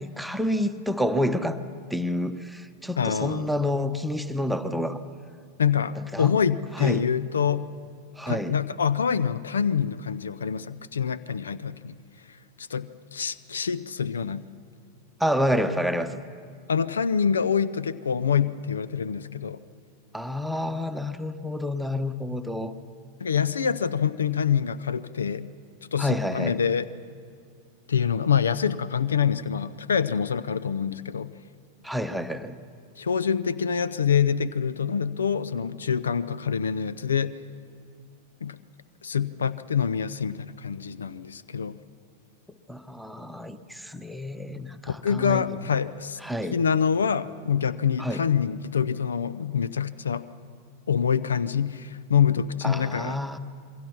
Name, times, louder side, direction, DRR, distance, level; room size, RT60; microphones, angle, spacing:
voice 1, 0.0-1.6 1.9-5.0 6.0-6.3 6.7-7.0 8.2-8.6 15.2-16.2 20.1-22.7 26.0-26.6 31.8-32.6 42.7-45.6 46.2-46.6 48.0-48.2 52.6-53.4, left 1 dB, ahead, 9 dB, 1.1 m, -29 dB
voice 2, 3.0-3.5 5.6-7.7 8.3-12.0 12.6-14.4 16.7-19.6 23.2-25.5 25.9-26.9 27.9-31.3 33.0-37.4 38.4-38.6 39.0-41.8 44.9-46.2 46.5-50.2 50.9-53.2, left 7 dB, 70° left, 17 dB, 0.6 m, -26 dB
27.5 x 22.5 x 5.9 m, 2.2 s
figure-of-eight pair, 90°, 0 cm